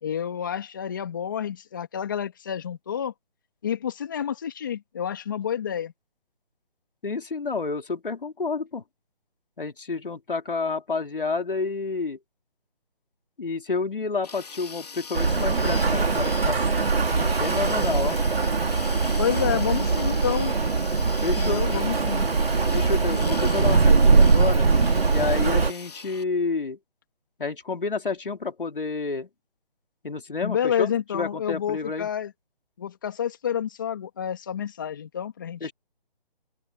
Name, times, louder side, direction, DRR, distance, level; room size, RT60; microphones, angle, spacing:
voice 1, 0.0-3.1 3.6-5.9 19.2-20.5 21.4-22.3 30.4-32.3 32.8-35.7, left 9 dB, 20° left, 2.8 m, -29 dB
voice 2, 7.0-8.8 9.6-12.2 13.4-16.6 17.4-18.2 21.2-21.6 22.7-24.7 25.0-26.8 27.4-29.3 30.0-32.1 35.6-35.7, left 4 dB, 65° left, 3.9 m, -29 dB
sound 1, 14.2-26.2, left 5 dB, 45° left, 2.4 m, -41 dB
Rain, 15.1-25.7, right 4 dB, 85° right, 2.4 m, -21 dB
open air
hypercardioid pair, 175°, 29 cm